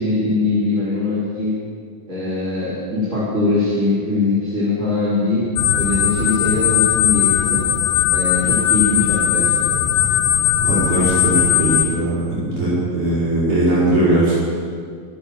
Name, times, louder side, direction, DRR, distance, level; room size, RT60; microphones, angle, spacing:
voice 1, 0.0-1.5 2.1-7.6 8.1-9.8, left 3 dB, 20° right, -11 dB, 4.1 m, -21 dB
sound 1, 5.6-11.9, left 9 dB, 75° left, 2.5 m, -18 dB
voice 2, 10.6-14.4, right 1 dB, 55° right, -9 dB, 6.0 m, -19 dB
23.5 x 7.9 x 7.3 m, 2.1 s
omnidirectional pair, 4.3 m